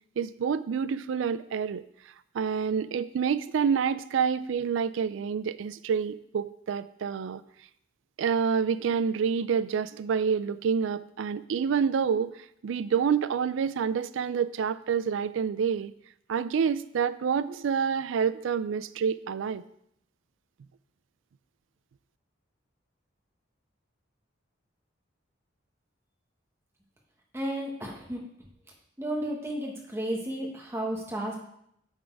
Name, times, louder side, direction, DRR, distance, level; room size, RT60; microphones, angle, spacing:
voice 1, 0.2-1.8 2.3-7.4 8.2-12.4 12.6-15.9 16.3-19.6, right 6 dB, 70° right, 16 dB, 0.3 m, -28 dB
voice 2, 27.3-28.2 29.0-31.4, right 1 dB, 15° right, -1 dB, 1.2 m, -33 dB
8.3 x 4.1 x 4.6 m, 0.72 s
head